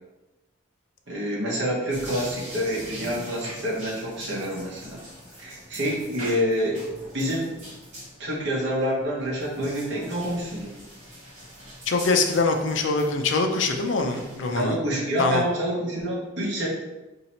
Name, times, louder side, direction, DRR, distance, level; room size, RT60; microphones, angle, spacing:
voice 1, 1.1-5.0 5.4-6.8 7.1-7.5 8.2-10.7 14.5-16.7, equal, 60° right, -4 dB, 1.1 m, -27 dB
sound 1, 1.9-14.6, equal, 35° right, 1.3 m, -42 dB
voice 2, 11.9-14.8 15.2-15.4, left 3 dB, 65° left, 4 dB, 0.5 m, -23 dB
2.8 x 2.8 x 4.3 m, 1.1 s
head